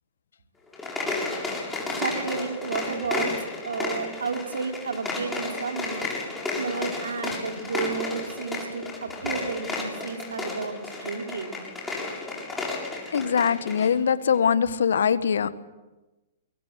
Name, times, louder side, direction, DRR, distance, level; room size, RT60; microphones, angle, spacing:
sound 1, 0.7-13.9, left 3 dB, 10° left, 7.5 m, -32 dB
voice 1, 2.0-3.4 3.6-6.1 6.5-11.6, right 5 dB, 80° right, 4 dB, 3.4 m, -32 dB
voice 2, 13.1-15.6, left 7 dB, 75° left, 14 dB, 1.4 m, -22 dB
24.0 x 23.0 x 7.9 m, 1.1 s
hypercardioid pair, 115°, 0 cm